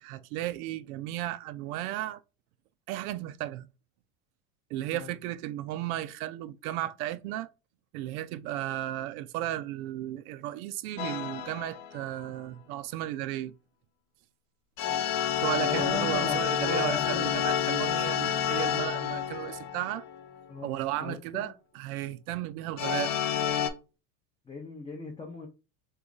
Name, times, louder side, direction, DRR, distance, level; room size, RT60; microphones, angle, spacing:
voice 1, 0.0-2.2 2.9-3.7 4.7-7.5 7.9-13.5 15.4-20.1 20.6-23.1, right 14 dB, 65° right, 0.5 m, -34 dB
voice 2, 4.8-5.2 15.6-18.2 20.5-21.5 24.5-25.5, left 3 dB, 10° left, 0.4 m, -38 dB
sound 1, 11.0-12.1 14.8-20.4 22.8-23.7, left 9 dB, 60° left, 0.8 m, -29 dB
2.9 x 2.4 x 3.7 m
hypercardioid pair, 95°, 47 cm